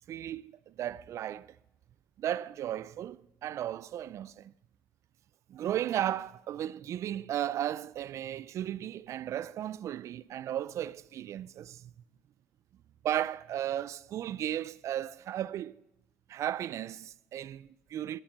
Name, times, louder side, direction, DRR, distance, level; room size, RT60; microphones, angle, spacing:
voice 1, 0.1-1.6 2.2-4.5 5.5-11.9 13.0-15.8 16.3-18.2, right 11 dB, 60° right, 0.4 m, -35 dB
10.5 x 9.7 x 7.1 m
supercardioid pair, 85°, 6 cm